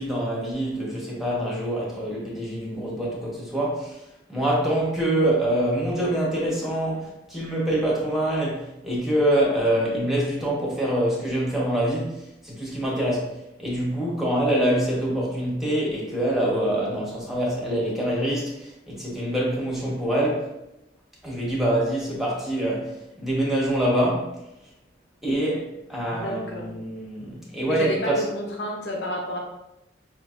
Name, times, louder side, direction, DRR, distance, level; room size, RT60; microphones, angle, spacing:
voice 1, 0.0-4.0 4.3-13.3 13.6-20.5 21.2-24.3 25.2-28.2, right 1 dB, ahead, -6 dB, 1.1 m, -25 dB
voice 2, 26.1-26.7 27.7-29.4, left 1 dB, 85° left, -1 dB, 0.8 m, -30 dB
5.6 x 2.6 x 2.4 m, 0.89 s
head